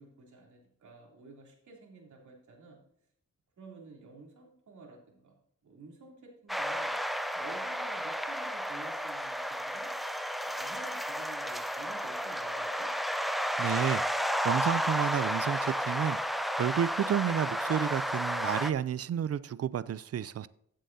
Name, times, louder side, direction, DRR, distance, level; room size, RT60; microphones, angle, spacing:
voice 1, 0.0-2.8 3.6-6.9 7.3-9.9 10.4-12.9, right 3 dB, 80° right, 3.1 m, -52 dB
sound 1, 6.5-18.7, equal, ahead, 0.5 m, -32 dB
voice 2, 13.6-14.0 14.4-16.2 16.6-20.5, right 9 dB, 55° right, 0.4 m, -30 dB
15.0 x 7.5 x 2.7 m
wide cardioid pair, 120°, 29 cm